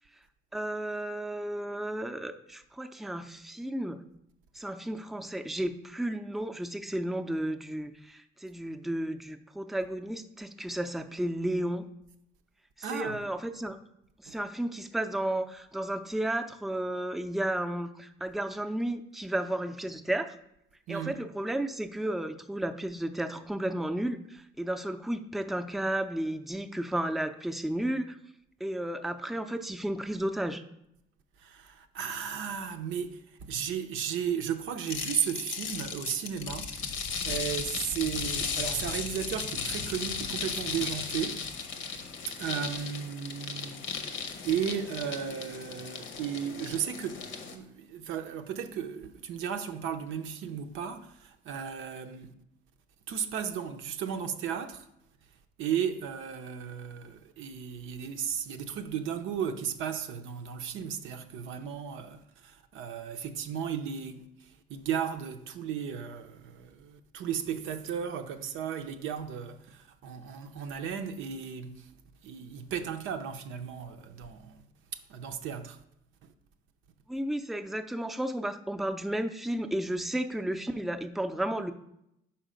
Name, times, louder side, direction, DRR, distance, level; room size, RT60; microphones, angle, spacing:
voice 1, 0.5-4.0 4.5-11.8 12.8-13.8 14.2-20.4 20.9-28.2 28.6-30.6 77.1-81.7, right 1 dB, ahead, 0.4 m, -33 dB
voice 2, 12.8-13.2 14.3-14.4 20.9-21.2 31.4-41.5 42.3-44.1 44.4-52.3 53.1-54.9 55.6-71.9 72.2-74.6 74.9-75.8 76.2-76.3, right 8 dB, 90° right, 0.6 m, -35 dB
sound 1, 34.9-47.6, left 5 dB, 85° left, 0.8 m, -36 dB
5.5 x 4.4 x 5.0 m
cardioid pair, 90°, 20 cm